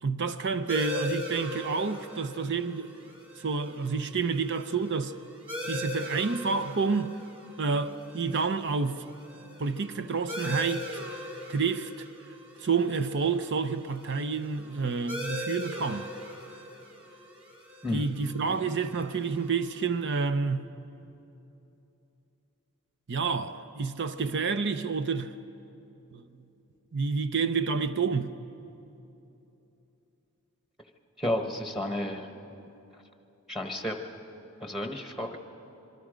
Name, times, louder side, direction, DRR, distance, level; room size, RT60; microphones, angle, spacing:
voice 1, 0.0-5.1 5.7-7.2 7.6-9.0 9.6-11.0 11.5-12.1 12.6-16.1 17.9-20.7 23.1-25.3 26.1-26.2 26.9-28.3, right 5 dB, 55° right, 0.7 m, -29 dB
sound 1, 0.7-19.8, left 1 dB, 25° right, 4.4 m, -40 dB
voice 2, 31.2-32.3 33.5-34.0 34.6-35.4, left 1 dB, ahead, 1.1 m, -31 dB
26.0 x 23.0 x 5.1 m
head